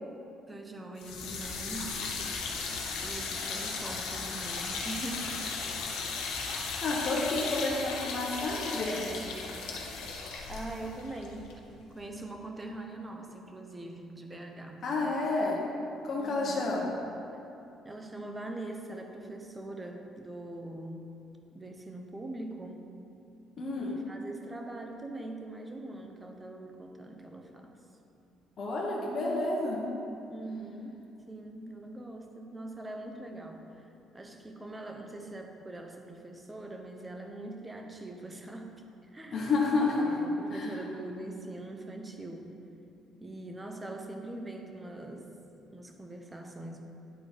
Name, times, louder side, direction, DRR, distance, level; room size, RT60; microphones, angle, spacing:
voice 1, 0.5-2.0 3.0-5.4 10.5-11.5 11.9-14.8 16.2-16.7 17.8-21.0 21.5-22.9 23.8-27.8 30.3-38.7 39.1-39.4 39.8-42.6 43.2-45.3 45.7-46.8, right 2 dB, 15° right, 3 dB, 0.8 m, -42 dB
sound 1, 1.0-12.1, left 4 dB, 85° left, 1.0 m, -36 dB
voice 2, 6.8-9.4 14.8-15.6 16.0-16.9 23.6-24.0 28.6-29.9 39.3-40.7, left 3 dB, 45° left, -4 dB, 1.1 m, -30 dB
9.9 x 4.0 x 5.0 m, 2.8 s
cardioid pair, 110°, 0 cm